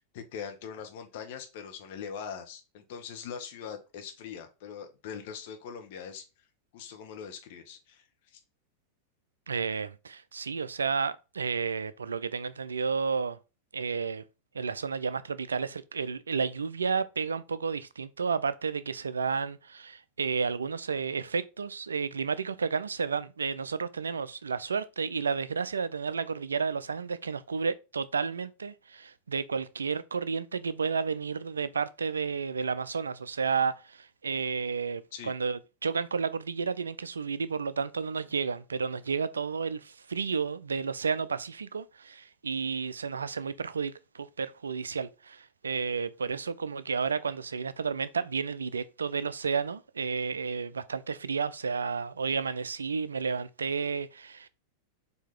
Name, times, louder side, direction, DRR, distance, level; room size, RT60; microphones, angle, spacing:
voice 1, 0.0-6.2 6.7-8.4 35.1-35.3, left 7 dB, 50° left, 0.9 m, -42 dB
voice 2, 9.5-13.4 13.7-14.2 14.5-54.5, right 5 dB, 70° right, 0.3 m, -32 dB
4.6 x 2.8 x 3.6 m
figure-of-eight pair, 90°, 0 cm